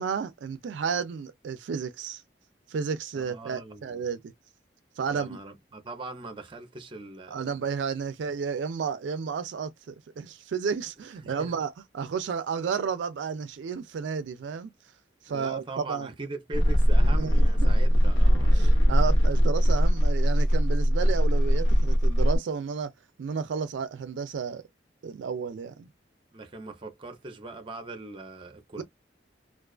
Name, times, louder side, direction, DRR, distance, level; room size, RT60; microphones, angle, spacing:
voice 1, 0.0-2.2 2.7-4.3 5.0-5.4 7.3-14.7 15.2-16.1 17.2-17.7 18.5-22.9 23.2-24.6 25.0-25.9 28.8-28.9, right 6 dB, 75° right, 0.4 m, -32 dB
voice 2, 3.1-4.0 5.1-7.5 11.2-11.5 15.3-18.8 26.3-28.8, right 2 dB, 30° right, 0.6 m, -41 dB
sound 1, 16.5-22.4, equal, 85° left, 0.8 m, -21 dB
2.4 x 2.3 x 2.2 m
head